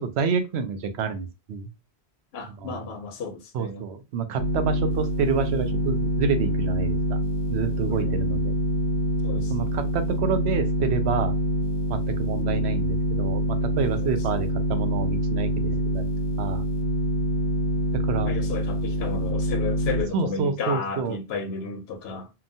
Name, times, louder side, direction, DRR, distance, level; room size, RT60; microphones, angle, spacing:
voice 1, 0.0-1.7 2.6-2.8 3.5-7.2 7.5-8.4 9.5-11.3 11.9-16.0 16.4-16.6 18.0-18.3 20.1-21.2, right 5 dB, 80° right, 0.9 m, -28 dB
voice 2, 2.3-3.9 7.9-8.5 9.2-9.8 12.3-12.8 14.0-14.5 18.2-22.3, left 4 dB, 75° left, 0.9 m, -34 dB
sound 1, 4.4-20.0, right 1 dB, 35° left, 0.4 m, -25 dB
2.9 x 2.2 x 2.5 m
omnidirectional pair, 1.1 m